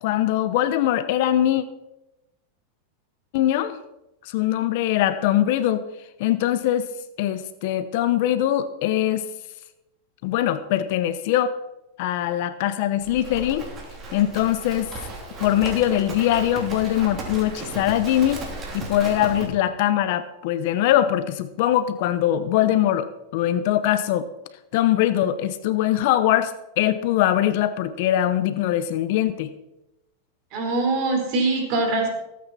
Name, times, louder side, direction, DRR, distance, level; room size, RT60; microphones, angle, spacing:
voice 1, 0.0-1.7 3.3-3.8 4.2-5.8 6.2-6.9 7.2-9.3 10.2-11.5 12.0-13.7 14.1-14.9 15.4-18.4 18.7-24.3 24.7-29.5, left 12 dB, 60° left, 12 dB, 0.8 m, -22 dB
Livestock farm animals working animals, 13.0-19.5, right 2 dB, 30° right, 3.1 m, -35 dB
voice 2, 30.5-32.1, right 3 dB, 50° right, 2 dB, 4.1 m, -23 dB
17.0 x 8.7 x 4.2 m, 0.93 s
hypercardioid pair, 125°, 0 cm